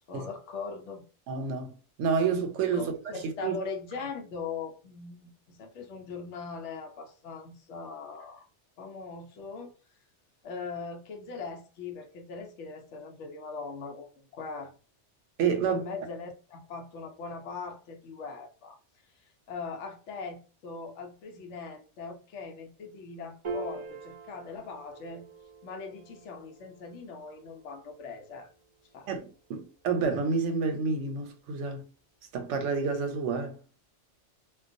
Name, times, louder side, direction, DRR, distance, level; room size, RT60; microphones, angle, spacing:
voice 1, 0.1-1.0 2.8-8.5 8.8-9.7 10.4-14.7 15.7-18.8 19.5-25.2 25.6-28.5 28.9-29.1, left 4 dB, 80° left, 0.9 m, -40 dB
voice 2, 1.3-1.7 2.0-2.9 3.4-3.6 15.4-15.8 29.1-31.8 32.3-33.6, right 5 dB, 90° right, 0.9 m, -29 dB
Piano, 23.4-30.1, right 3 dB, 50° right, 0.4 m, -44 dB
2.3 x 2.2 x 2.5 m
omnidirectional pair, 1.2 m